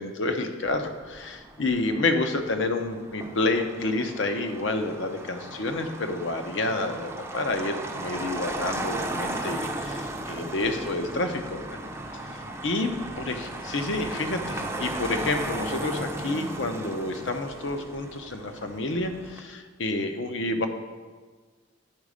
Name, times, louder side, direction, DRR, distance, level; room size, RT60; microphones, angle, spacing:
voice 1, 0.0-11.8 12.1-12.9 13.2-20.7, left 2 dB, 65° left, 6 dB, 0.7 m, -29 dB
Motor vehicle (road), 0.6-19.4, right 2 dB, 15° right, 0.5 m, -36 dB
9.9 x 4.1 x 5.0 m, 1.4 s
head